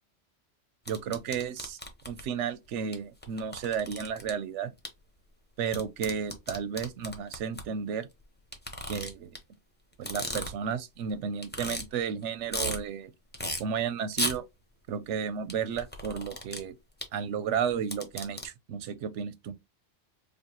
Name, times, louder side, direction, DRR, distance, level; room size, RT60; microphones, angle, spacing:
sound 1, 0.8-2.2 2.9-3.0 3.2-4.3 4.8-4.9 5.7-7.6 8.5-9.4 9.9-10.7 11.1-11.2 11.4-11.8 12.2-12.8 13.3-13.6 14.1-14.4 15.5-16.6 17.0-17.1 17.7-18.4, left 1 dB, 10° left, 0.7 m, -34 dB
voice 1, 0.9-1.8 2.1-4.7 5.6-8.1 8.9-9.3 10.0-13.1 13.6-14.4 14.9-16.7 17.1-19.5, right 7 dB, 90° right, 0.9 m, -33 dB
5.1 x 2.3 x 2.9 m
omnidirectional pair, 1.2 m